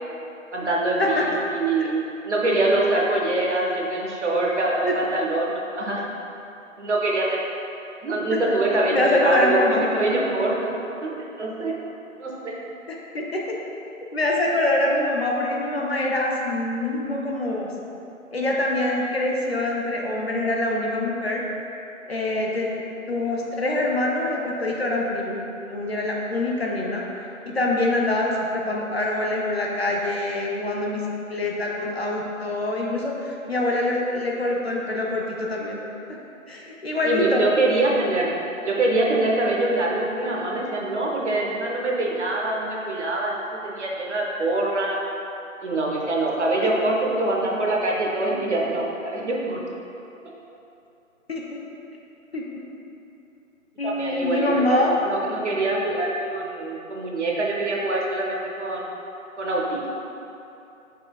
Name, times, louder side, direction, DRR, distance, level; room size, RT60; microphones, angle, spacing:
voice 1, 0.5-6.0 6.8-7.4 8.0-10.6 11.0-11.8 12.2-12.6 37.0-38.3 38.6-43.3 43.6-45.0 45.6-49.6 53.8-58.9 59.4-59.8, right 2 dB, 55° right, -2 dB, 0.7 m, -24 dB
voice 2, 8.9-9.8 13.1-13.6 14.1-17.7 18.3-21.4 22.1-22.8 23.1-25.3 25.7-27.0 27.5-31.0 31.3-35.8 36.5-37.4 51.3-51.6 52.3-52.4 53.8-54.9, left 2 dB, 50° left, -2 dB, 0.5 m, -24 dB
5.4 x 3.3 x 2.3 m, 2.8 s
hypercardioid pair, 170°, 41 cm